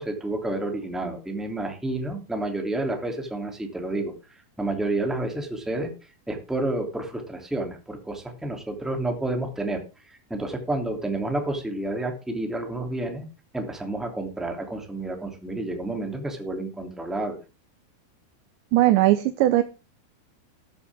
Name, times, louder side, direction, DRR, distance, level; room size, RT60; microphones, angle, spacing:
voice 1, 0.0-5.9 6.3-13.3 13.5-17.4, right 2 dB, ahead, 4 dB, 1.6 m, -30 dB
voice 2, 18.7-19.6, right 15 dB, 85° right, 9 dB, 3.2 m, -19 dB
13.5 x 12.0 x 3.6 m, 0.31 s
omnidirectional pair, 5.0 m